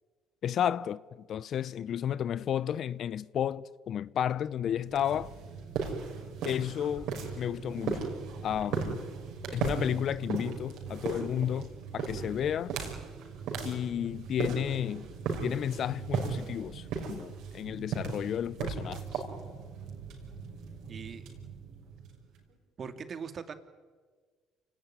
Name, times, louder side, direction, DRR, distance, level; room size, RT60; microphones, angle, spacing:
voice 1, 0.4-5.3 6.4-7.1 7.4-8.1 8.4-9.0 9.5-12.7 13.6-15.1 15.4-19.2, left 9 dB, 55° left, 0.7 m, -32 dB
sound 1, 4.8-22.4, right 5 dB, 70° right, 5.8 m, -37 dB
voice 2, 20.9-21.3 22.8-23.5, right 6 dB, 45° right, 2.5 m, -40 dB
28.5 x 18.5 x 9.8 m
hypercardioid pair, 65°, 0 cm